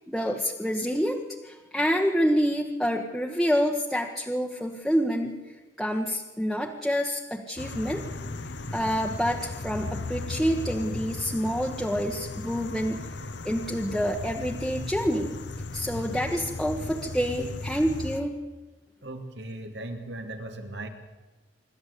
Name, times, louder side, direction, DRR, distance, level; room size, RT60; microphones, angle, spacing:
voice 1, 0.1-8.0 8.7-13.0 13.4-15.4 15.7-18.4, equal, ahead, -2 dB, 1.3 m, -27 dB
sound 1, 7.6-18.2, left 3 dB, 75° left, 1.1 m, -36 dB
voice 2, 19.0-20.9, right 1 dB, 75° right, 6 dB, 2.5 m, -38 dB
26.5 x 12.5 x 8.4 m, 1.2 s
head